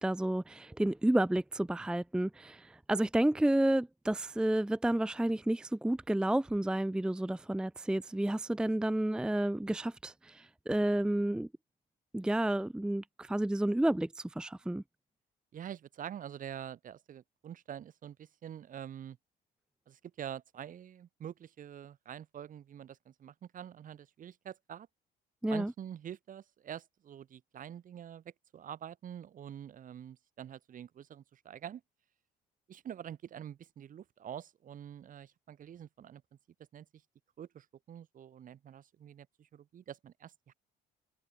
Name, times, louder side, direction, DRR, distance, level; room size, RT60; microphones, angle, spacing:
voice 1, 0.0-11.5 12.1-14.8 25.4-25.7, right 1 dB, 5° right, 0.6 m, -31 dB
voice 2, 15.5-19.2 19.9-24.9 25.5-28.2 28.5-31.8 32.7-36.2 36.7-36.8 37.4-39.3 39.5-40.5, right 9 dB, 50° right, 6.1 m, -46 dB
cardioid pair, 110°, 17 cm